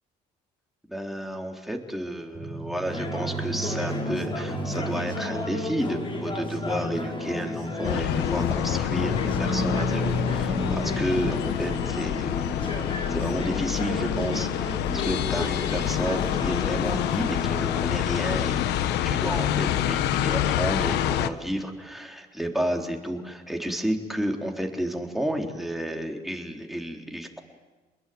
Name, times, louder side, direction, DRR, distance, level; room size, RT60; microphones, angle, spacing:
voice 1, 0.9-12.5 12.9-27.4, equal, ahead, 2 dB, 3.8 m, -31 dB
sound 1, 2.3-11.4, right 1 dB, 35° right, 4.8 m, -33 dB
sound 2, 2.9-19.8, left 3 dB, 30° left, 6.6 m, -33 dB
sound 3, 7.8-21.3, left 11 dB, 80° left, 1.2 m, -27 dB
28.0 x 21.5 x 9.4 m, 1.2 s
cardioid pair, 110°, 17 cm